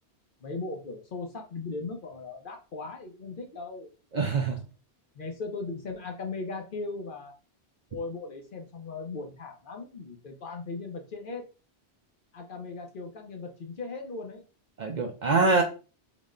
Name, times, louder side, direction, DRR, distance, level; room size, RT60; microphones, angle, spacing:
voice 1, 0.4-4.3 5.1-7.3 7.9-11.4 12.3-14.4, left 3 dB, 55° left, 3 dB, 0.9 m, -38 dB
voice 2, 4.1-4.6 14.8-15.6, right 3 dB, 55° right, 4 dB, 0.5 m, -24 dB
3.9 x 2.1 x 3.6 m, 0.34 s
omnidirectional pair, 1.1 m